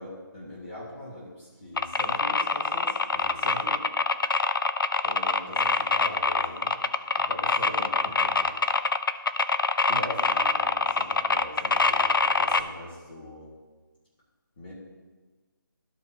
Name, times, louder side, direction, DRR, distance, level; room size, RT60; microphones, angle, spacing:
voice 1, 0.0-3.8 4.3-4.8 5.0-6.8 7.2-8.7 9.1-9.4 9.9-13.5 14.6-14.7, left 1 dB, 25° left, -7 dB, 1.5 m, -41 dB
sound 1, 1.8-12.6, left 4 dB, 70° left, 0.5 m, -24 dB
13.5 x 4.9 x 2.8 m, 1.3 s
figure-of-eight pair, 170°, 12 cm